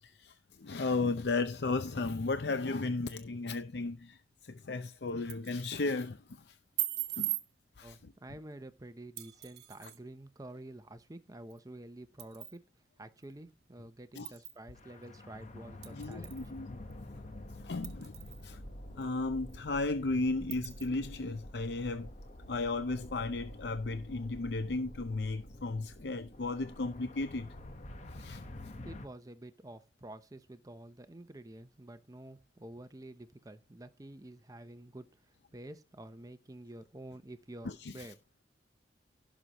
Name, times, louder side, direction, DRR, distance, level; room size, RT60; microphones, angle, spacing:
voice 1, 0.0-6.6 7.2-7.4 7.8-8.1 9.8-9.9 14.1-14.3 15.9-16.8 17.6-18.2 18.4-18.6 19.0-22.1 22.5-27.5 28.1-28.4 37.6-38.1, left 3 dB, 70° left, 0.6 m, -35 dB
sound 1, 5.1-5.8 6.8-7.5 9.2-10.0 11.5-11.6 12.2-12.6 13.2-13.3 14.2-14.6 15.8-16.5 16.9-17.0 17.8-18.5 19.0-19.1 19.5-19.6 20.5-20.9, right 15 dB, 65° right, 1.3 m, -39 dB
voice 2, 7.8-12.6 13.0-16.5 28.8-38.2, right 1 dB, 20° right, 0.7 m, -49 dB
sound 2, 14.7-29.1, left 1 dB, 40° left, 1.1 m, -48 dB
16.5 x 6.2 x 3.0 m
head